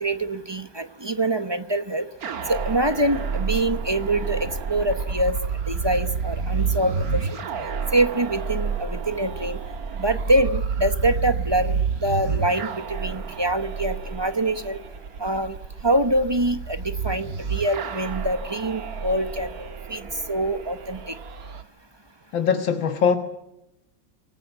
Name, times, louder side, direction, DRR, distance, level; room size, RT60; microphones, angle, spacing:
voice 1, 0.0-2.1 2.5-5.4 5.7-7.4 7.9-9.6 10.0-14.8 15.2-15.6 15.8-20.0 20.3-21.1, right 1 dB, 20° right, 11 dB, 0.6 m, -25 dB
sound 1, 2.2-21.6, right 5 dB, 55° right, 1.8 m, -30 dB
voice 2, 22.3-23.2, left 7 dB, 90° left, 7 dB, 2.2 m, -21 dB
27.0 x 19.5 x 9.3 m, 0.86 s
omnidirectional pair, 2.0 m